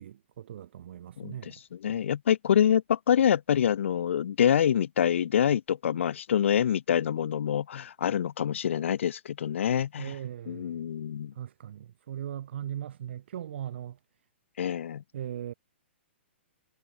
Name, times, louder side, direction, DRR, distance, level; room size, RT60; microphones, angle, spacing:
voice 1, 0.0-1.6 10.0-10.8 11.4-14.0 15.1-15.5, right 10 dB, 60° right, 0.4 m, -39 dB
voice 2, 1.2-10.2 10.5-11.3 14.6-15.0, left 9 dB, 75° left, 0.5 m, -26 dB
hypercardioid pair, 170°, 7 cm